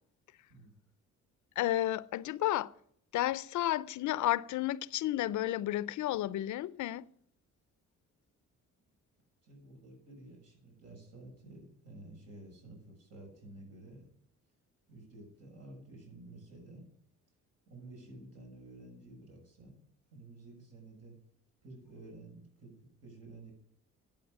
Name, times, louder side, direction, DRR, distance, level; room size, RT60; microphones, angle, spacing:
voice 1, 0.5-0.8 9.4-14.1 14.9-16.9 17.7-19.8 20.1-21.1 21.6-23.5, right 2 dB, 55° right, 6.7 m, -52 dB
voice 2, 1.6-2.7 3.1-7.1, left 14 dB, 75° left, 0.6 m, -32 dB
11.0 x 8.7 x 9.6 m
cardioid pair, 90°, 30 cm